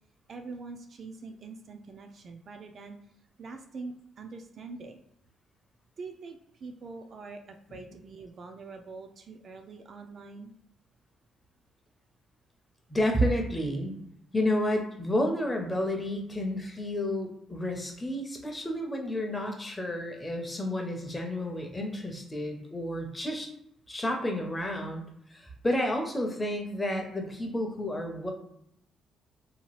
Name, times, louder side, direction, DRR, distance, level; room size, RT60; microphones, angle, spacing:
voice 1, 0.3-3.0 3.4-5.0 6.0-10.5, right 4 dB, 45° right, 5 dB, 0.3 m, -44 dB
voice 2, 12.9-13.9 14.3-23.5 23.9-25.0 25.3-28.3, left 1 dB, 15° left, 2 dB, 0.6 m, -30 dB
2.8 x 2.2 x 3.0 m, 0.73 s
cardioid pair, 135°, 0 cm